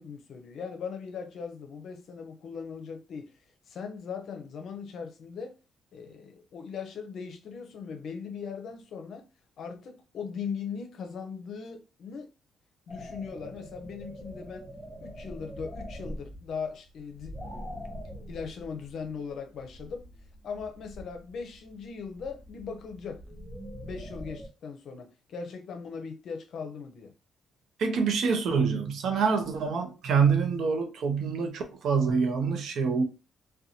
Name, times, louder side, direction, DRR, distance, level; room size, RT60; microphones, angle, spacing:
voice 1, 0.0-3.3 3.7-5.6 5.9-9.2 9.6-12.3 12.9-14.7 15.0-17.4 18.3-20.1 20.4-23.2 23.8-27.1, left 6 dB, 65° left, 0.6 m, -39 dB
sound 1, 12.9-24.5, equal, 5° left, 0.8 m, -44 dB
voice 2, 27.8-33.0, right 5 dB, 70° right, 0.6 m, -26 dB
2.5 x 2.2 x 2.8 m
cardioid pair, 90°, 0 cm